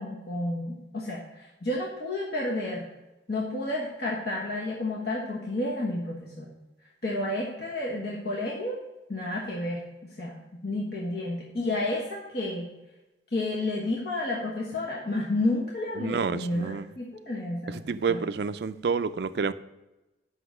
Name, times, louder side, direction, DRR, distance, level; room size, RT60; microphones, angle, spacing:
voice 1, 0.0-2.9 3.3-6.5 7.0-8.8 9.1-9.8 10.2-10.4 10.6-12.7 13.3-17.8 18.1-18.2, left 2 dB, 55° left, 1.4 m, -31 dB
voice 2, 16.0-16.9 17.7-19.5, right 5 dB, 55° right, 0.4 m, -29 dB
8.0 x 5.6 x 6.1 m
head